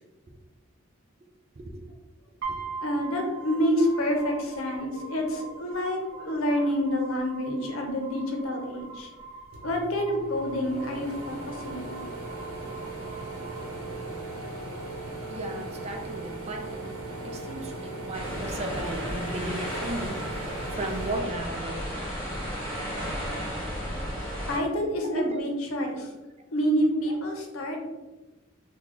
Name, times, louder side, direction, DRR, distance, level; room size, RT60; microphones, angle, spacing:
sound 1, 2.4-14.4, right 4 dB, 65° right, 0.8 m, -43 dB
voice 1, 2.8-9.1 9.6-12.1 24.5-26.1 26.5-27.9, equal, 80° left, 2 dB, 0.7 m, -28 dB
sound 2, 9.5-22.1 22.5-23.7, right 2 dB, 90° right, 0.9 m, -39 dB
voice 2, 15.3-22.0 25.0-25.4 27.1-27.2, right 2 dB, 30° right, 4 dB, 0.4 m, -36 dB
sound 3, 18.1-24.6, equal, 10° left, 1.1 m, -34 dB
3.1 x 2.3 x 3.7 m, 1.1 s
head